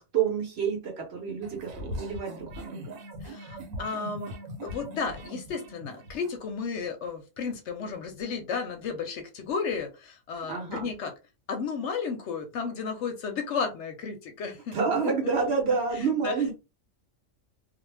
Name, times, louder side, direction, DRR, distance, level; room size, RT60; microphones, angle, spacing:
voice 1, 0.0-2.9 10.5-10.9 14.7-16.5, right 5 dB, 55° right, 0.9 m, -28 dB
sound 1, 1.4-6.4, equal, 75° right, 1.1 m, -40 dB
voice 2, 3.2-4.3 4.6-11.1 11.5-14.8 16.0-16.4, left 5 dB, 65° left, 0.8 m, -33 dB
2.4 x 2.0 x 3.2 m
omnidirectional pair, 1.4 m